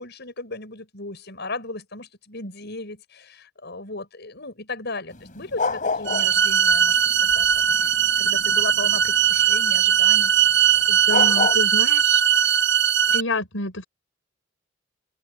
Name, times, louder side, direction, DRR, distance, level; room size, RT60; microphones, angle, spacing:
voice 1, 0.0-7.9 8.2-10.3, left 2 dB, 60° left, 7.6 m, -36 dB
sound 1, 5.1-6.5 6.7-9.1 10.8-10.9 11.1-11.6, left 4 dB, 40° left, 5.1 m, -27 dB
sound 2, 6.1-13.2, right 9 dB, 65° right, 0.9 m, -19 dB
voice 2, 10.9-12.6 13.1-13.8, left 2 dB, 85° left, 5.0 m, -29 dB
open air
head